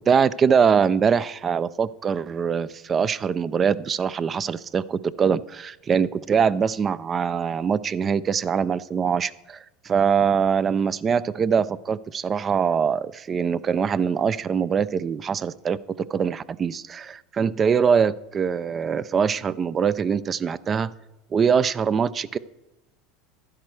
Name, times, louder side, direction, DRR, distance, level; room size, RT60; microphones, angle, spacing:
voice 1, 0.1-20.9 21.3-22.4, right 6 dB, 30° right, 18 dB, 0.3 m, -23 dB
11.5 x 10.5 x 3.2 m, 0.97 s
supercardioid pair, 115°, 0 cm